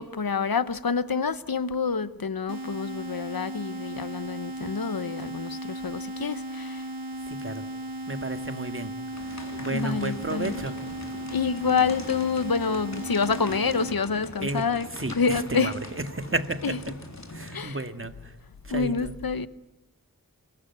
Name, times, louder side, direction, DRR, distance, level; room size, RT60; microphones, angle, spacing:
voice 1, 0.0-6.8 9.7-10.6 11.3-15.7 16.6-16.8 17.5-17.8 18.7-19.5, left 5 dB, 85° left, 14 dB, 1.0 m, -27 dB
sound 1, 2.5-13.9, right 1 dB, 85° right, 1.8 m, -36 dB
voice 2, 7.3-7.6 8.1-8.9 9.3-10.8 14.4-14.7 14.9-17.0 17.3-18.3 18.6-19.1, right 2 dB, 35° right, 8 dB, 1.9 m, -32 dB
sound 2, 9.1-17.6, left 2 dB, 50° left, 3.5 m, -42 dB
26.5 x 22.0 x 9.5 m, 0.93 s
wide cardioid pair, 55°, 34 cm